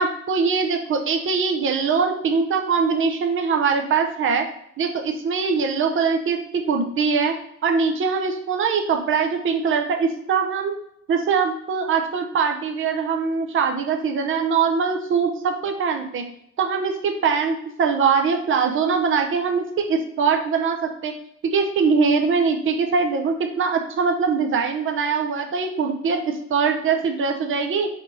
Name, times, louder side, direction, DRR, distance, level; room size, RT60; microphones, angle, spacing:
voice 1, 0.0-4.4 4.8-7.3 7.6-10.7 11.1-16.2 16.6-21.1 21.4-27.9, right 5 dB, 45° right, 4 dB, 0.6 m, -22 dB
4.3 x 2.7 x 4.2 m, 0.72 s
cardioid pair, 90°, 30 cm